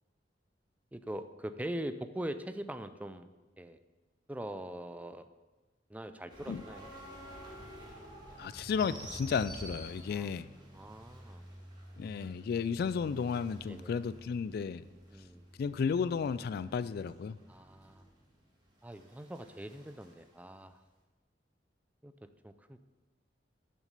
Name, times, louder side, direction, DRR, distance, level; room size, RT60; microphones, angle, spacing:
voice 1, 0.9-3.3 3.6-3.8 4.3-5.3 5.9-6.9 10.1-10.3 10.7-11.5 13.7-14.0 15.1-15.4 17.5-18.1 18.8-20.8 22.0-22.1 22.4-22.8, right 1 dB, 10° right, 10 dB, 0.4 m, -42 dB
sound 1, 6.3-20.1, equal, 25° right, 2.2 m, -50 dB
voice 2, 8.4-10.5 12.0-14.8 15.6-17.4, left 6 dB, 60° left, 16 dB, 0.3 m, -33 dB
6.5 x 6.3 x 6.7 m, 1.2 s
head